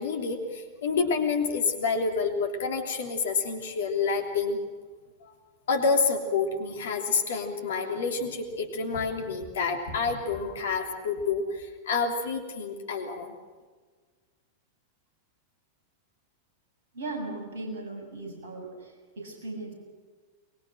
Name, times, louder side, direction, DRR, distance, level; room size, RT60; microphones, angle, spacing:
voice 1, 0.0-4.6 5.7-13.3, left 4 dB, 60° left, 4 dB, 3.2 m, -28 dB
voice 2, 16.9-19.7, right 2 dB, 60° right, 1 dB, 7.6 m, -37 dB
24.0 x 22.0 x 6.3 m, 1.5 s
figure-of-eight pair, 90°, 0 cm